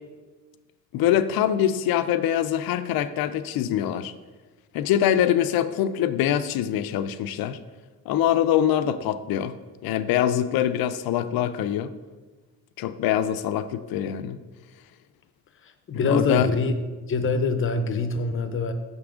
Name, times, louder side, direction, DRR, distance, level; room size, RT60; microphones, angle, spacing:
voice 1, 0.9-4.1 4.7-7.6 8.1-9.5 9.8-11.9 12.8-14.4 16.0-16.5, left 10 dB, 80° left, 12 dB, 0.5 m, -24 dB
voice 2, 15.6-16.7 17.1-18.7, left 4 dB, 35° left, 8 dB, 0.6 m, -24 dB
6.6 x 3.6 x 4.9 m, 1.3 s
cardioid pair, 120°, 35 cm